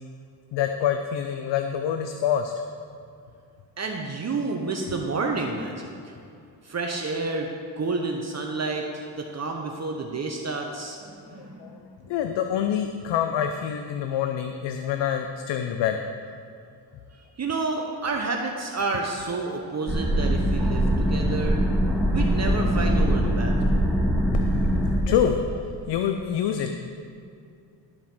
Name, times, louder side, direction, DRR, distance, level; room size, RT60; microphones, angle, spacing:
voice 1, 0.5-2.5 11.4-11.8 12.1-16.0 16.3-16.4 24.3-24.4 24.7-26.7, left 9 dB, 75° left, 6 dB, 0.6 m, -26 dB
voice 2, 3.8-6.1 6.6-7.5 7.8-11.8 17.4-21.6 22.1-23.9, right 3 dB, 35° right, 1 dB, 0.9 m, -30 dB
sound 1, 19.9-25.0, equal, ahead, 1.6 m, -22 dB
12.5 x 4.2 x 6.0 m, 2.5 s
cardioid pair, 85°, 44 cm